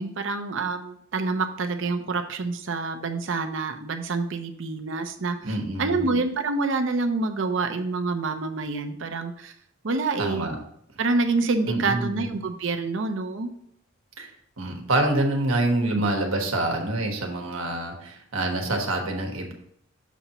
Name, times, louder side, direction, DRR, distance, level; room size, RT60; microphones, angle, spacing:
voice 1, 0.0-9.5 9.8-10.5 11.0-13.5 15.9-16.0, right 3 dB, 65° right, 6 dB, 0.7 m, -27 dB
voice 2, 5.4-6.0 10.2-10.6 11.6-12.3 14.2-14.3 14.6-19.5, right 2 dB, 85° right, 2 dB, 1.3 m, -26 dB
7.1 x 3.0 x 5.5 m, 0.69 s
head